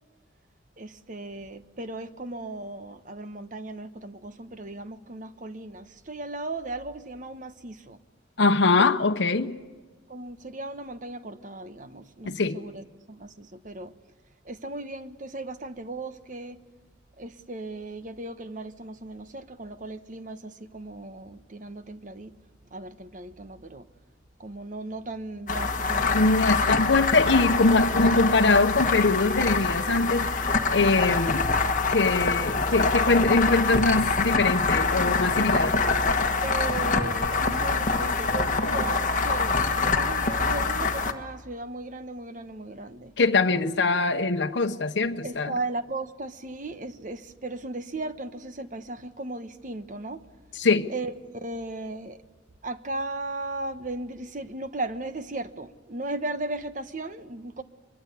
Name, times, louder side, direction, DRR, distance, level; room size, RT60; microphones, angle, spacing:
voice 1, 0.8-8.0 8.8-8.9 9.4-9.6 10.1-13.9 14.4-16.6 17.2-22.3 22.7-23.9 24.4-26.6 36.4-43.1 45.2-50.2 50.9-52.2 52.6-57.6, right 2 dB, 45° right, 1.1 m, -36 dB
voice 2, 8.4-9.6 12.3-12.6 26.1-31.5 31.9-35.8 43.2-45.5 50.6-50.9, left 3 dB, 70° left, 0.9 m, -23 dB
sound 1, 25.5-41.1, left 3 dB, 45° left, 1.5 m, -25 dB
23.5 x 22.5 x 8.4 m
head